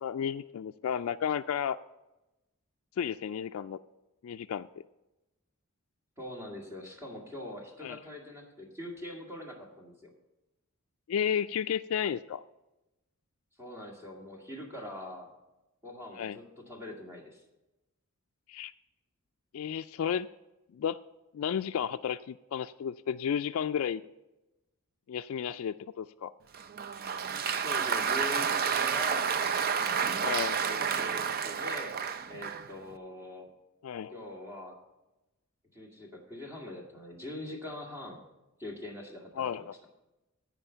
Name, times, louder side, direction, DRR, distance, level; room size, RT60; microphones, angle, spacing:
voice 1, 0.0-1.8 3.0-3.8 4.2-4.7 7.8-8.0 11.1-12.4 16.2-16.4 18.5-18.7 19.5-20.3 20.7-21.0 21.3-24.0 25.1-26.3 30.2-30.7 33.8-34.1 39.4-39.6, left 8 dB, 70° left, 8 dB, 0.3 m, -32 dB
voice 2, 6.2-10.1 13.6-15.3 15.8-17.4 27.6-30.3 30.6-32.0 32.3-33.5 34.1-34.8 35.7-38.3 38.6-39.7, left 1 dB, 10° right, -1 dB, 2.1 m, -43 dB
Applause, 26.5-32.7, right 7 dB, 45° right, 0.5 m, -30 dB
14.5 x 5.1 x 6.8 m, 0.98 s
head